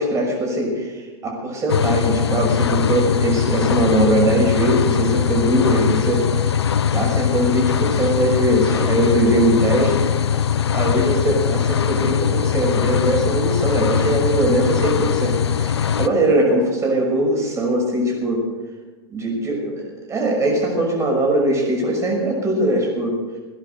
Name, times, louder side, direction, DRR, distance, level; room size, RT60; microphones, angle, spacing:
voice 1, 0.0-6.2 6.9-10.1 10.7-18.4 19.1-23.2, right 1 dB, 20° right, 0 dB, 6.1 m, -20 dB
sound 1, 1.7-16.1, left 8 dB, 80° left, 0.7 m, -21 dB
18.5 x 10.5 x 6.6 m, 1.3 s
hypercardioid pair, 100°, 14 cm